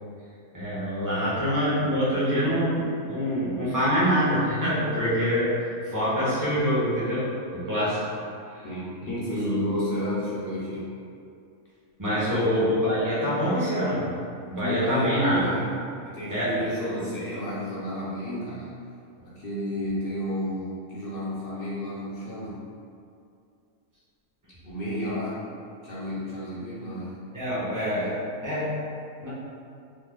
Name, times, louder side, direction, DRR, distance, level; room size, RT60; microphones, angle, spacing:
voice 1, 0.5-5.5 5.8-8.0 8.5-8.7 9.0-9.6 12.0-14.1 14.5-15.4 16.3-16.6 27.3-28.7 29.2-29.3, equal, 15° right, -10 dB, 0.7 m, -25 dB
voice 2, 8.6-10.9 12.4-12.7 14.6-15.7 16.0-18.7 19.2-22.6 24.6-25.4 25.8-27.2, left 1 dB, 50° left, -8 dB, 0.7 m, -31 dB
3.1 x 2.1 x 3.5 m, 2.4 s
omnidirectional pair, 1.5 m